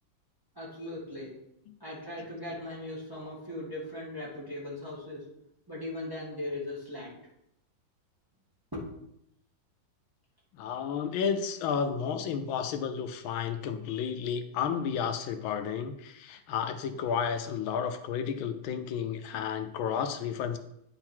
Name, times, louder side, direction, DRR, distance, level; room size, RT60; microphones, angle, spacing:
voice 1, 0.6-1.4 1.8-5.3 5.7-7.2 8.7-8.8, left 1 dB, 10° right, -6 dB, 1.8 m, -38 dB
voice 2, 10.5-20.6, left 7 dB, 85° left, 8 dB, 1.5 m, -32 dB
9.8 x 3.9 x 4.5 m, 0.78 s
omnidirectional pair, 2.2 m